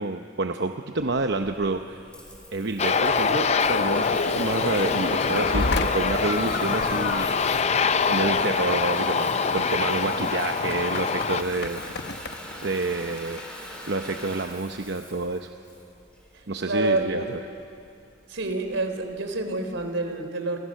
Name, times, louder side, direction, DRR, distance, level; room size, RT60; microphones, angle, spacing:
voice 1, 0.0-2.0 2.5-7.3 8.1-11.8 12.6-15.5 16.5-17.4, right 3 dB, 60° right, 6 dB, 0.8 m, -28 dB
Water tap faucet / Bathtub (filling or washing) / Trickle dribble, 1.0-19.9, equal, 5° left, 4.4 m, -41 dB
Aircraft, 2.8-11.4, left 5 dB, 35° left, 0.5 m, -25 dB
sound 1, 2.9-14.2, left 3 dB, 55° left, 1.0 m, -33 dB
voice 2, 16.3-17.2 18.3-20.6, right 2 dB, 85° right, 6 dB, 3.6 m, -28 dB
29.5 x 26.5 x 6.5 m, 2.6 s
head